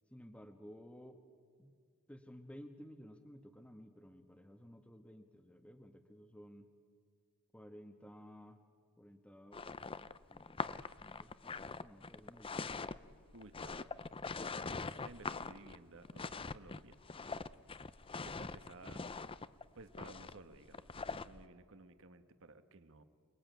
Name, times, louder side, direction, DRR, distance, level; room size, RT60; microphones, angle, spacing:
voice 1, 0.1-1.2 1.6-1.7 2.1-6.7 7.5-8.6 9.0-9.6 10.3-10.7 11.0-12.7, equal, 5° left, 4 dB, 1.2 m, -55 dB
sound 1, 9.5-21.4, left 4 dB, 25° left, 0.6 m, -43 dB
voice 2, 13.3-13.9 14.5-17.0 18.2-19.0 19.7-23.0, right 2 dB, 60° right, 10 dB, 1.4 m, -56 dB
28.0 x 20.0 x 9.3 m, 2.1 s
head